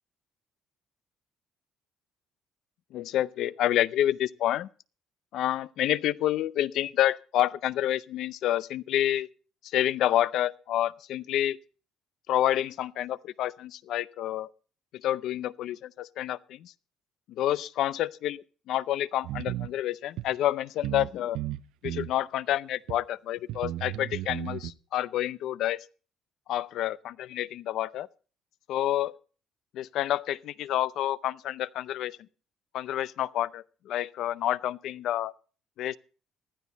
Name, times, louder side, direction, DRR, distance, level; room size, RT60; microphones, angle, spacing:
voice 1, 2.9-4.7 5.3-9.3 9.6-11.6 12.3-14.5 14.9-16.7 17.3-21.4 21.8-25.8 26.5-28.1 28.7-29.1 29.7-32.2 32.7-35.3 35.8-36.0, left 12 dB, 60° left, 0.5 m, -28 dB
sound 1, 19.2-19.7 20.2-20.3 20.8-21.1 21.3-22.1 22.9-23.0 23.5-24.7, right 15 dB, 75° right, 0.6 m, -34 dB
15.5 x 13.0 x 4.0 m
cardioid pair, 165°, 0 cm